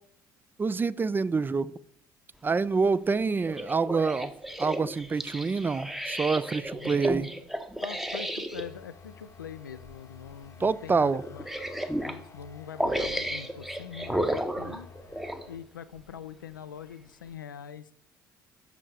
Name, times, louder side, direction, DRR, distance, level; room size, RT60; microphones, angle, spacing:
voice 1, 0.6-1.7 2.4-4.3 4.6-7.3 10.6-11.2, right 4 dB, 20° right, 17 dB, 0.3 m, -26 dB
sound 1, 3.4-8.7 9.7-9.9 10.3-10.4 11.2-12.2 12.8-15.5 16.1-16.2, right 1 dB, 5° right, 0.8 m, -33 dB
voice 2, 7.8-11.4 12.1-14.9 15.5-17.9, left 8 dB, 80° left, 13 dB, 0.4 m, -43 dB
sound 2, 8.5-15.6, left 5 dB, 30° left, 0.8 m, -51 dB
6.8 x 6.2 x 4.9 m, 0.66 s
figure-of-eight pair, 55°, 11 cm